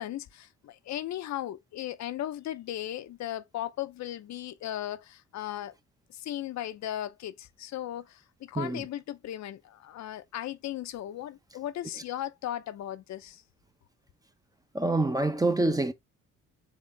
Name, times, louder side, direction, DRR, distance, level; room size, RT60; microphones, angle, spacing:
voice 1, 0.0-5.7 6.1-13.4, left 12 dB, 65° left, 0.6 m, -37 dB
voice 2, 8.5-8.9 14.7-15.9, right 2 dB, 10° right, 0.6 m, -26 dB
3.9 x 3.6 x 3.2 m
cardioid pair, 90°, 30 cm